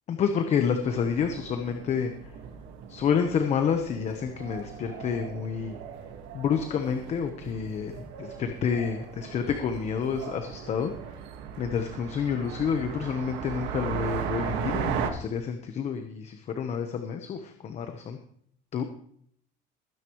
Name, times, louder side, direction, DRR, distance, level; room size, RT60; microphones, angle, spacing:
voice 1, 0.1-2.1 2.9-5.8 6.3-10.9 11.6-18.2 18.7-18.8, left 7 dB, 40° left, 6 dB, 1.0 m, -29 dB
sound 1, 0.8-15.1, right 8 dB, 70° right, 1.7 m, -37 dB
21.0 x 9.8 x 3.1 m, 0.64 s
cardioid pair, 155°, 18 cm